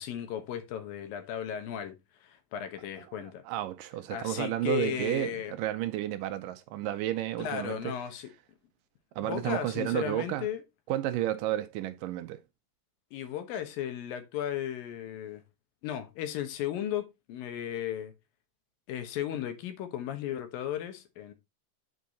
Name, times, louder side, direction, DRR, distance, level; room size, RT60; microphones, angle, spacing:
voice 1, 0.0-1.9 2.2-3.4 4.1-5.5 7.4-8.3 9.2-10.6 13.1-15.4 15.8-18.1 18.9-21.3, left 10 dB, 80° left, 2.9 m, -35 dB
voice 2, 3.0-7.9 9.2-10.5 10.9-12.4, right 13 dB, 80° right, 2.2 m, -32 dB
8.4 x 4.7 x 4.0 m
omnidirectional pair, 4.1 m